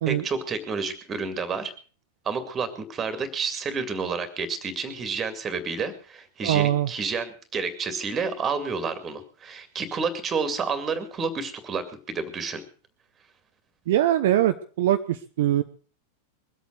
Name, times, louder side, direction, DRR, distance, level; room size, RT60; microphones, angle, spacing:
voice 1, 0.1-1.7 2.2-12.6, right 5 dB, 25° right, 11 dB, 2.4 m, -30 dB
voice 2, 6.4-6.9 13.9-15.6, right 12 dB, 55° right, 8 dB, 0.7 m, -22 dB
22.0 x 8.4 x 6.3 m, 0.40 s
figure-of-eight pair, 90°, 0 cm